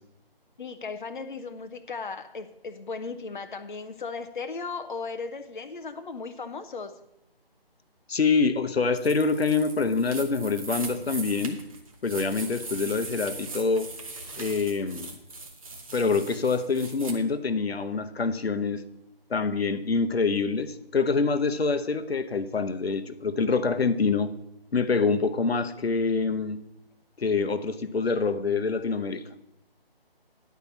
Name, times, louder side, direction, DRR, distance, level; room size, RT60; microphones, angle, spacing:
voice 1, 0.6-6.9, left 4 dB, 55° left, 8 dB, 0.7 m, -36 dB
voice 2, 8.1-11.6 12.0-13.9 14.4-15.1 15.9-18.8 19.3-24.3 24.7-26.6 27.2-29.2, left 4 dB, 80° left, 10 dB, 0.8 m, -26 dB
sound 1, 8.9-17.1, right 3 dB, 35° right, 1.0 m, -40 dB
10.5 x 4.6 x 7.1 m, 0.84 s
figure-of-eight pair, 170°, 30 cm